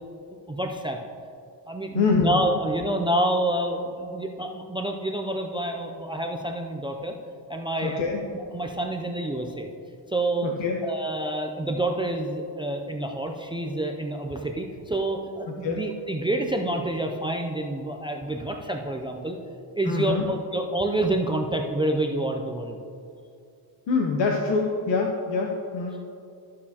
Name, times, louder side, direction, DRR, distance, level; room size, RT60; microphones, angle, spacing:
voice 1, 0.5-1.0 1.7-7.1 7.5-8.0 8.3-9.7 10.1-10.5 10.8-19.4 19.8-22.8, right 1 dB, 15° right, 3 dB, 0.3 m, -28 dB
voice 2, 1.9-2.5 7.8-8.2 10.4-10.8 15.5-15.8 19.8-20.3 23.9-26.0, left 4 dB, 85° left, 0 dB, 0.9 m, -25 dB
13.5 x 6.5 x 2.8 m, 2.5 s
wide cardioid pair, 160°, 43 cm